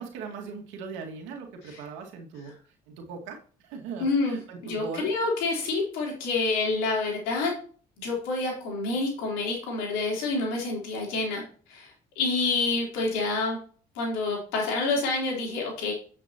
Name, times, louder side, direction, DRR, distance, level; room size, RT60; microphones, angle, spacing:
voice 1, 0.0-2.5 2.9-3.4 3.6-5.1, right 5 dB, 85° right, 1 dB, 2.1 m, -39 dB
voice 2, 4.0-4.4 4.6-7.5 8.0-11.4 11.7-13.6 14.0-15.9, left 3 dB, 85° left, -2 dB, 3.8 m, -28 dB
9.4 x 7.4 x 3.0 m, 0.42 s
supercardioid pair, 65°, 19 cm